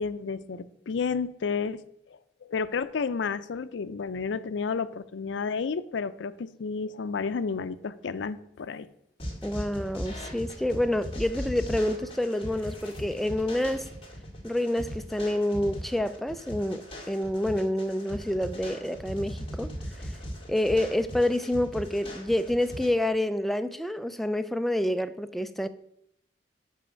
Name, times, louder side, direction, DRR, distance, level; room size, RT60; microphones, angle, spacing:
voice 1, 0.0-1.8 2.4-8.9, left 5 dB, 80° left, 0.4 m, -31 dB
sound 1, 9.2-22.9, equal, 30° left, 2.1 m, -39 dB
voice 2, 9.4-13.9 14.4-19.7 20.5-25.7, left 1 dB, ahead, 0.3 m, -28 dB
5.5 x 5.2 x 6.3 m
head